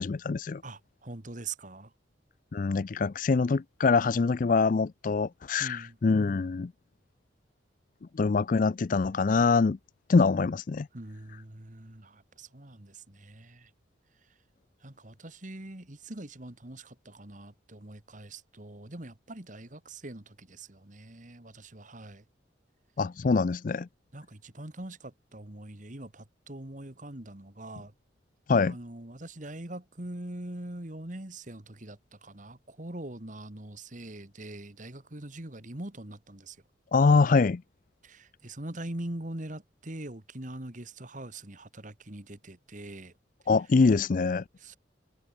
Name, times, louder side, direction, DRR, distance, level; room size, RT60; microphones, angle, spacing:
voice 1, 0.0-0.6 2.5-6.7 8.1-9.8 10.1-10.9 23.0-23.9 28.5-28.8 36.9-37.6 43.5-44.4, left 4 dB, 45° left, 0.4 m, -24 dB
voice 2, 0.6-1.9 5.6-5.9 10.9-13.7 14.8-22.2 24.1-27.9 28.7-36.6 38.0-43.1 44.6-44.8, right 1 dB, 40° right, 2.0 m, -43 dB
head